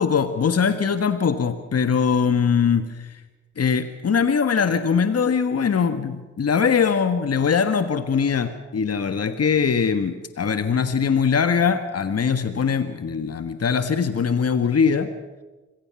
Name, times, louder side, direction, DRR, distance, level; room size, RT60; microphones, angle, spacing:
voice 1, 0.0-3.2 3.6-15.1, left 6 dB, 55° left, 10 dB, 1.6 m, -21 dB
25.0 x 17.0 x 7.1 m, 1.2 s
supercardioid pair, 40°, 30 cm